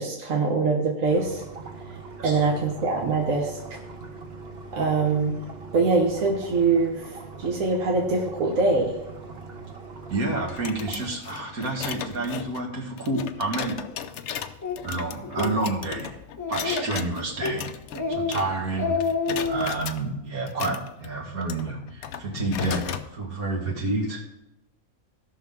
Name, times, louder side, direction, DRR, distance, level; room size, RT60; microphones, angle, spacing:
voice 1, 0.0-1.4 2.2-3.6 4.7-5.4 5.7-9.0, right 3 dB, 65° right, -1 dB, 1.6 m, -23 dB
sound 1, 1.1-11.1, right 3 dB, 45° right, 1.3 m, -41 dB
voice 2, 10.1-13.8 14.8-16.1 16.5-17.6 18.1-19.0 19.4-24.3, right 2 dB, 85° right, -1 dB, 2.4 m, -29 dB
sound 2, 10.5-18.7 19.0-20.0 20.5-23.1, left 8 dB, 65° left, 0.8 m, -36 dB
Speech, 14.6-14.8 15.2-15.5 15.9-16.0 16.4-17.0 17.4-17.6 17.9-18.3 18.6-19.7, left 4 dB, 15° left, 0.8 m, -27 dB
17.0 x 6.0 x 3.6 m, 0.92 s
omnidirectional pair, 1.5 m